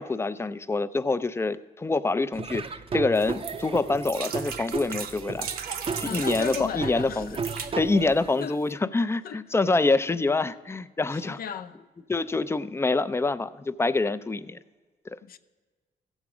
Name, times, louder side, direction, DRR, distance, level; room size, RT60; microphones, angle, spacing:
voice 1, 0.0-2.7 2.9-5.5 6.0-7.4 7.8-11.4 12.1-14.6 15.1-15.2, left 3 dB, 15° left, 0.4 m, -26 dB
Laughter / Drum, 2.3-8.3, right 5 dB, 35° right, 0.5 m, -34 dB
sound 1, 3.2-6.7 7.2-7.7 8.4-8.5 8.7-8.8, right 7 dB, 75° right, 0.7 m, -37 dB
voice 2, 6.0-7.8 8.4-8.6 9.2-9.4 10.5-10.6 11.1-11.8 15.2-15.4, left 7 dB, 70° left, 0.6 m, -36 dB
15.5 x 7.2 x 4.9 m
cardioid pair, 100°, 16 cm